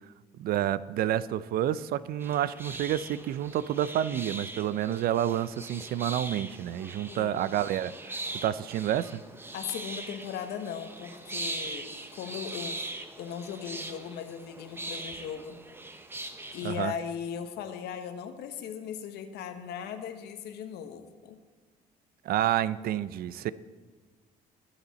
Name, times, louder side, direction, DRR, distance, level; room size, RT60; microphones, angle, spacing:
voice 1, 0.3-9.2 16.6-16.9 22.2-23.5, right 11 dB, 65° right, 17 dB, 0.5 m, -29 dB
sound 1, 2.2-16.9, right 2 dB, 15° right, 0.8 m, -41 dB
voice 2, 7.1-7.5 9.5-12.8 13.2-15.5 16.5-21.4, left 8 dB, 75° left, 8 dB, 1.2 m, -38 dB
20.5 x 7.1 x 4.1 m, 1.4 s
cardioid pair, 110°, 17 cm